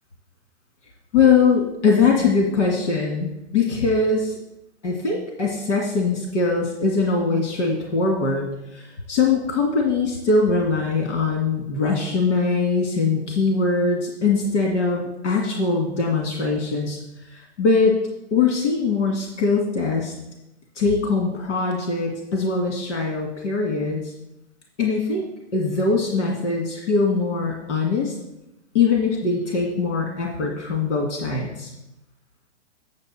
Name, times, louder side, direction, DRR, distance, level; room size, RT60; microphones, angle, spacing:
voice 1, 1.1-4.3 4.8-8.5 8.7-17.0 17.3-18.0 18.3-20.1 20.8-24.1 24.8-25.2 25.5-28.1 28.7-31.7, left 4 dB, 80° left, 0 dB, 2.1 m, -22 dB
8.2 x 7.0 x 4.2 m, 0.92 s
hypercardioid pair, 135°, 35 cm